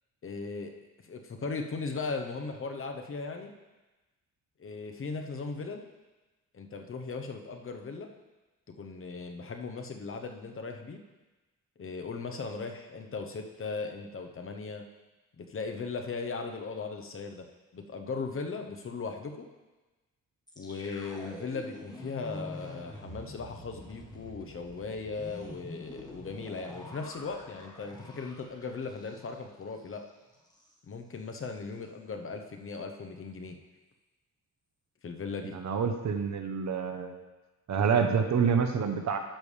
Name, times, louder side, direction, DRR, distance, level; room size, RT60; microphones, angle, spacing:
voice 1, 0.2-0.7 1.0-3.5 4.6-5.8 6.5-8.1 8.7-11.0 11.8-14.8 15.4-17.5 17.7-19.5 20.6-30.0 30.9-33.6 35.0-35.5, left 4 dB, 40° left, 4 dB, 0.9 m, -38 dB
sound 1, 20.5-29.5 29.8-30.0 30.3-30.7, left 1 dB, 10° left, 1.5 m, -46 dB
voice 2, 35.4-37.2 37.7-39.2, right 6 dB, 60° right, 6 dB, 0.9 m, -27 dB
11.5 x 7.0 x 3.4 m, 1.1 s
cardioid pair, 120°, 32 cm